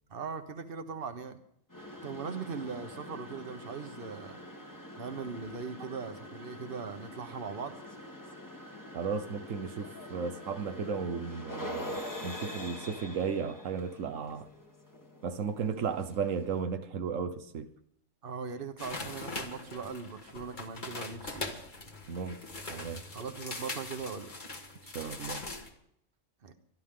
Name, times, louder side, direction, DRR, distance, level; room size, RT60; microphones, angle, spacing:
voice 1, 0.1-1.4 2.0-4.4 5.0-7.8 18.2-21.6 23.1-24.3 26.4-26.6, right 5 dB, 50° right, 1.3 m, -40 dB
sound 1, 1.7-16.6, left 1 dB, 15° left, 1.4 m, -45 dB
voice 2, 8.9-14.5 15.2-17.7 22.1-22.4 22.7-23.0 24.9-25.4, right 6 dB, 90° right, 1.3 m, -35 dB
sound 2, 18.8-25.7, left 2 dB, 40° left, 1.8 m, -41 dB
24.5 x 11.5 x 3.8 m
omnidirectional pair, 1.3 m